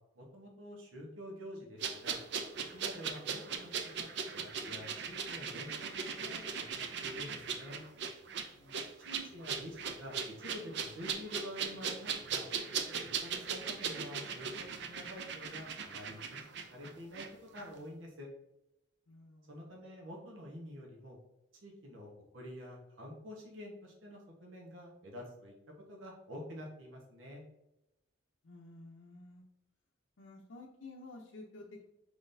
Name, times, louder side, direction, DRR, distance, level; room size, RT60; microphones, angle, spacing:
voice 1, 0.1-2.2 2.7-7.8 8.9-12.5 13.0-18.3 19.5-21.2 21.6-25.5 25.9-27.4, equal, 85° right, -1 dB, 1.1 m, -48 dB
sound 1, 1.8-17.3 17.5-17.7, right 6 dB, 60° right, 0.5 m, -39 dB
voice 2, 8.5-8.9 19.1-19.6 28.4-29.4 30.2-31.8, left 2 dB, 85° left, -2 dB, 0.6 m, -52 dB
5.0 x 3.9 x 2.6 m, 0.89 s
head